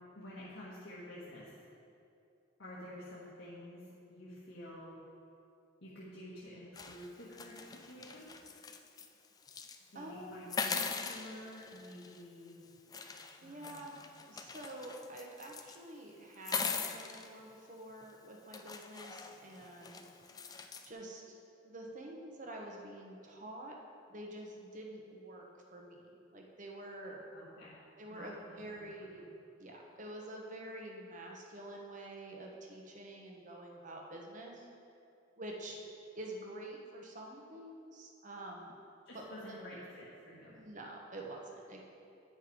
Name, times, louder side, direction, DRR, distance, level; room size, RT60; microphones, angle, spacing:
voice 1, 0.1-1.5 2.6-5.0 5.8-8.3 9.9-12.5 13.4-13.9 27.3-27.7 28.1-28.3 28.7-29.2 39.0-40.5, left 1 dB, 80° left, -9 dB, 1.4 m, -50 dB
sound 1, 6.7-9.1 9.4-9.8 10.5-12.2 12.9-15.8 16.3-17.3 18.0-18.1 18.5-20.9, left 5 dB, 20° left, 0.3 m, -41 dB
voice 2, 9.9-10.5 13.4-20.1 20.4-20.6 20.8-21.2 21.6-23.8 24.1-27.2 28.0-29.2 29.6-34.7 35.4-35.8 36.1-38.7 39.1-39.5 40.5-41.8, right 1 dB, 40° right, 0 dB, 1.0 m, -47 dB
9.3 x 5.6 x 4.8 m, 2.6 s
head